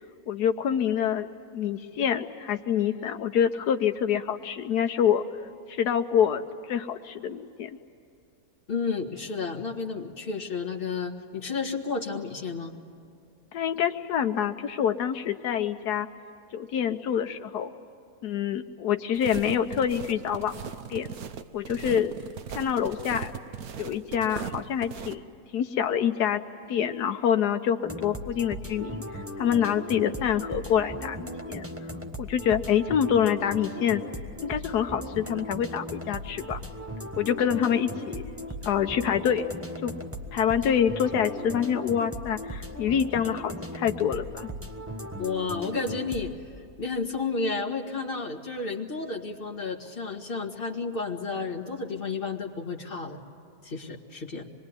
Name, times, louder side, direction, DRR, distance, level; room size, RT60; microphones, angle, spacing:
voice 1, 0.3-1.3 1.5-5.2 5.7-7.8 13.5-16.1 16.5-17.7 18.2-20.6 20.9-21.1 21.5-22.1 22.5-23.3 23.8-25.2 25.5-26.4 26.7-31.6 32.2-34.0 34.4-36.6 37.2-38.3 38.6-39.4 39.8-39.9 40.3-44.5, left 8 dB, 80° left, 7 dB, 1.4 m, -26 dB
voice 2, 8.7-12.7 45.2-46.3 46.8-53.2 53.6-54.4, left 4 dB, 35° left, 2 dB, 2.1 m, -32 dB
sound 1, 19.1-25.1, right 7 dB, 70° right, 1.3 m, -38 dB
sound 2, 27.8-46.3, equal, 10° right, 1.1 m, -38 dB
25.5 x 21.5 x 9.7 m, 2.6 s
omnidirectional pair, 1.7 m